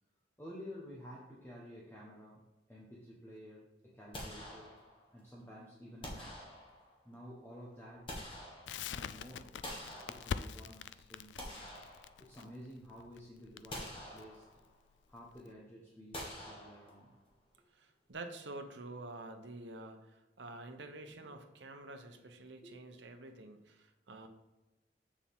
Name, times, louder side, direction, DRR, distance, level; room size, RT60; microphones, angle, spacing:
voice 1, 0.4-2.4 2.7-4.7 5.1-6.4 7.0-8.1 8.9-11.6 12.2-14.5 15.1-17.1 21.0-21.1 22.6-22.7, equal, 10° left, -5 dB, 1.1 m, -52 dB
sound 1, 4.1-5.2 6.0-7.1 7.7-9.1 9.6-10.7 11.2-12.6 13.0-13.2 13.7-14.8 16.1-17.3, left 1 dB, 30° left, 1.6 m, -47 dB
Crackle, 8.7-15.5, left 7 dB, 85° left, 0.4 m, -44 dB
voice 2, 17.7-24.3, right 2 dB, 85° right, 5 dB, 0.9 m, -48 dB
7.2 x 6.8 x 3.6 m, 1.1 s
head